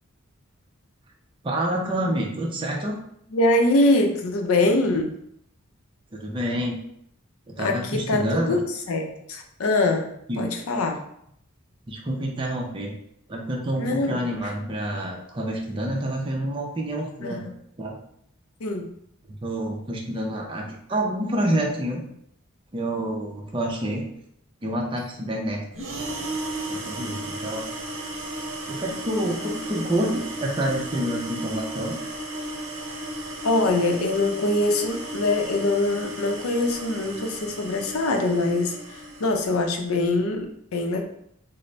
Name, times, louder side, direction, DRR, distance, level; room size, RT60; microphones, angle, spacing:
voice 1, 1.4-3.0 6.1-6.8 7.5-8.6 10.3-10.4 11.9-13.0 13.3-17.4 17.8-18.0 19.3-22.0 22.7-24.1 24.6-25.6 26.7-27.7 28.7-32.0, right 1 dB, 25° right, -1 dB, 0.5 m, -28 dB
voice 2, 3.3-5.2 7.6-10.1 10.4-11.0 13.8-14.2 17.2-17.5 18.6-18.9 33.4-38.8 39.2-41.0, left 2 dB, 85° left, 3 dB, 0.5 m, -23 dB
sound 1, 25.7-39.7, right 1 dB, 65° right, 0.7 m, -34 dB
3.9 x 2.0 x 3.2 m, 0.71 s
head